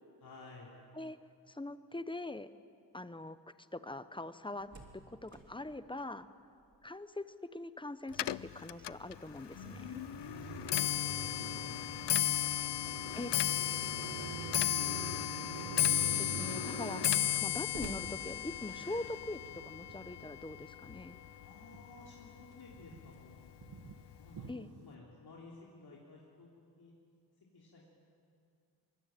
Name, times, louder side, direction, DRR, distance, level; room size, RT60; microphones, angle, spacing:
voice 1, 0.2-0.8 10.2-14.9 21.4-23.4 24.1-26.5 26.8-26.9 27.5-27.9, left 3 dB, 60° left, -3 dB, 3.5 m, -55 dB
voice 2, 1.5-2.5 2.9-3.4 3.7-6.3 6.8-10.0 13.1-13.3 16.2-21.2 24.5-24.7, left 2 dB, 10° left, 13 dB, 0.8 m, -43 dB
Slam, 4.6-7.1 7.4-7.5 8.0-13.6 14.5-15.1 15.6-15.7 15.9-19.0, right 3 dB, 40° right, 3.0 m, -54 dB
Clock, 8.1-21.5 21.8-22.3 23.1-23.2 23.5-23.9 24.1-24.2, left 12 dB, 75° left, 0.6 m, -34 dB
Car passing by, 9.6-22.1 22.4-24.9, right 6 dB, 65° right, 1.5 m, -48 dB
24.0 x 23.5 x 9.1 m, 2.4 s
wide cardioid pair, 145°, 42 cm